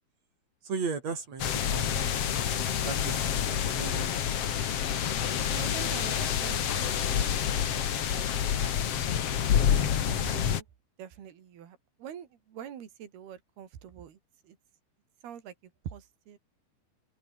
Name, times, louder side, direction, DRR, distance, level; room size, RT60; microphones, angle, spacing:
voice 1, 0.6-1.4 1.7-2.3 2.8-4.1, right 5 dB, 45° right, 5.2 m, -36 dB
sound 1, 1.4-10.6, left 9 dB, 50° left, 2.1 m, -28 dB
voice 2, 5.5-8.8 9.7-10.7 11.0-14.2 14.4-14.6 15.2-15.5 15.8-16.4, right 9 dB, 75° right, 4.8 m, -45 dB
omnidirectional pair, 4.6 m